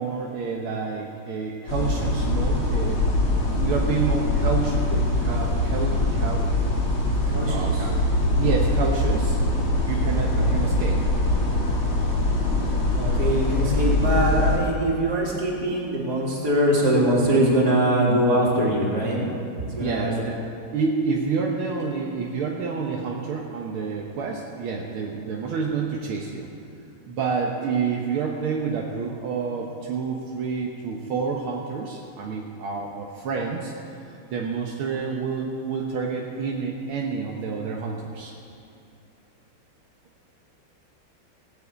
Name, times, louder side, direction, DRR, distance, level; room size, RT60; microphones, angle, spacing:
voice 1, 0.0-3.0 3.6-6.5 7.5-8.0 8.4-9.4 9.9-11.0 19.8-20.4 20.7-26.5 27.1-33.7 34.3-38.3, right 5 dB, 80° right, -1 dB, 2.0 m, -28 dB
sound 1, 1.7-14.6, left 1 dB, 85° left, 4.4 m, -23 dB
voice 2, 7.3-7.9 10.4-10.7 12.9-19.4 19.6-20.2, right 1 dB, 45° right, -4 dB, 3.3 m, -23 dB
17.5 x 7.7 x 8.3 m, 2.8 s
omnidirectional pair, 2.3 m